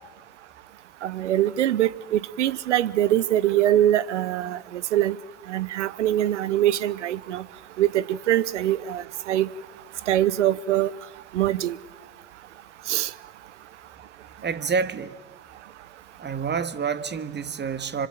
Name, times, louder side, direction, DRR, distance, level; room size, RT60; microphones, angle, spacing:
voice 1, 1.0-5.2 5.5-7.4 7.8-9.5 10.1-10.9 11.3-11.8 12.9-13.1, right 12 dB, 80° right, 0.9 m, -23 dB
voice 2, 14.4-15.2 16.2-18.1, right 5 dB, 30° right, 1.7 m, -28 dB
25.5 x 25.5 x 9.0 m
hypercardioid pair, 65°, 36 cm